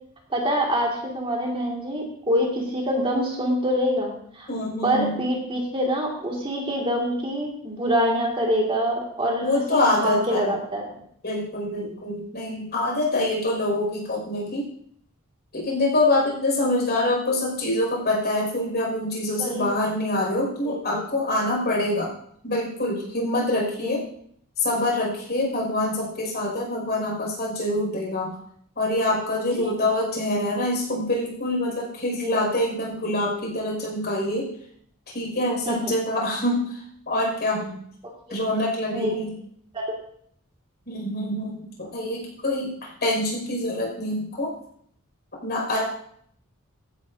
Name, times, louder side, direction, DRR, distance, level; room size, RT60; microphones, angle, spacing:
voice 1, 0.3-4.5 4.8-11.0 19.4-19.7 20.6-20.8 23.8-24.0 29.6-29.7 32.2-32.4 35.7-35.9 38.9-39.2 39.7-39.9, equal, 25° right, -2 dB, 2.3 m, -25 dB
voice 2, 4.5-5.2 9.4-10.5 11.2-14.7 15.5-22.1 22.4-24.0 24.6-28.4 28.8-34.5 35.1-37.7 38.3-39.4 40.9-44.5 45.4-45.8, left 1 dB, 50° left, -2 dB, 5.8 m, -25 dB
17.0 x 10.5 x 2.7 m, 0.66 s
head